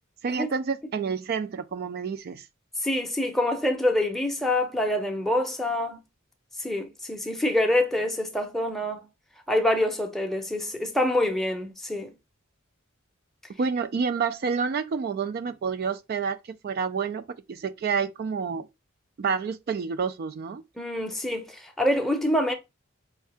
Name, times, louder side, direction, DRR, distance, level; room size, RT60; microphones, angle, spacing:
voice 1, 0.2-2.4 13.6-16.4 16.6-18.7 19.2-20.6, right 5 dB, 50° right, 0.3 m, -29 dB
voice 2, 2.8-6.0 6.6-9.0 9.5-12.1 20.8-22.5, left 1 dB, ahead, 0.6 m, -26 dB
4.4 x 2.7 x 3.3 m
head